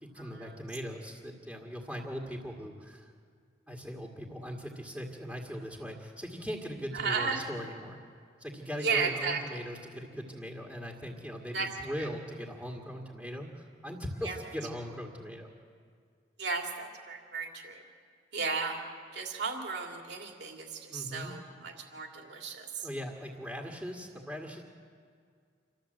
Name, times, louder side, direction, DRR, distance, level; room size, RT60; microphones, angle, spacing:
voice 1, 0.0-3.1 3.7-8.0 8.4-15.5 20.9-21.3 22.8-24.6, equal, 5° right, -2 dB, 2.0 m, -40 dB
voice 2, 6.9-7.5 8.8-9.4 11.5-11.7 12.0-12.1 14.2-14.4 16.4-17.8 18.3-18.8 19.1-22.9, right 4 dB, 65° right, 2 dB, 2.8 m, -34 dB
27.5 x 13.5 x 7.9 m, 2.1 s
head